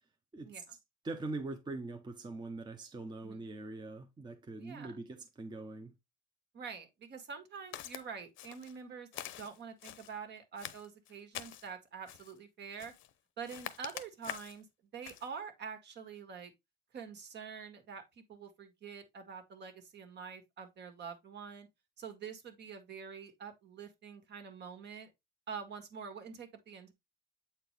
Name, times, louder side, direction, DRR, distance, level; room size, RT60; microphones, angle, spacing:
voice 1, 1.0-5.9, right 3 dB, 20° right, 0.9 m, -42 dB
voice 2, 4.6-5.0 6.5-12.9 13.4-14.7 14.9-16.5 16.9-21.7 22.0-25.1 25.5-26.9, right 6 dB, 55° right, 1.8 m, -46 dB
Walk footsteps, 7.7-8.0 8.4-8.8 9.1-10.1 10.6-11.7 12.1-12.4 12.8-13.1 13.5-14.6 15.0-15.3, left 12 dB, 70° left, 0.8 m, -45 dB
7.9 x 4.4 x 3.3 m
cardioid pair, 120°, 21 cm